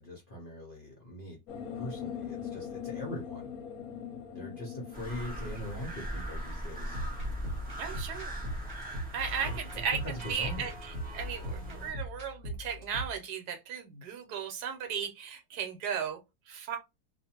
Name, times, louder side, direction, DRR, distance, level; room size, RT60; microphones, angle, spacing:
voice 1, 0.0-1.4 1.7-3.5 4.3-7.0 9.4-10.7, left 1 dB, 50° left, 0.6 m, -41 dB
sound 1, 1.5-7.8, left 8 dB, 65° left, 1.0 m, -42 dB
sound 2, 4.9-11.9, right 1 dB, 10° right, 0.4 m, -40 dB
sound 3, 6.8-13.2, left 1 dB, 45° right, 0.8 m, -40 dB
voice 2, 7.8-8.4 9.1-16.2 16.5-16.8, right 7 dB, 75° right, 1.2 m, -36 dB
2.5 x 2.4 x 2.8 m
omnidirectional pair, 1.8 m